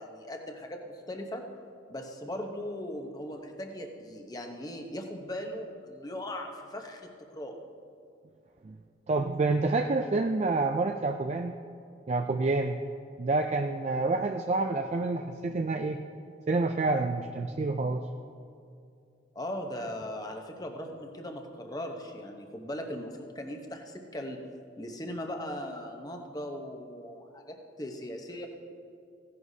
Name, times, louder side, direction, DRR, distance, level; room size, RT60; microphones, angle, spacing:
voice 1, 0.0-1.4 1.9-7.6 19.3-24.4 24.8-28.5, left 1 dB, 20° left, 3 dB, 0.8 m, -39 dB
voice 2, 9.1-11.5 12.1-12.8 13.2-16.0 16.5-18.0, right 3 dB, 35° right, 5 dB, 0.3 m, -28 dB
16.0 x 11.0 x 2.7 m, 2.4 s
head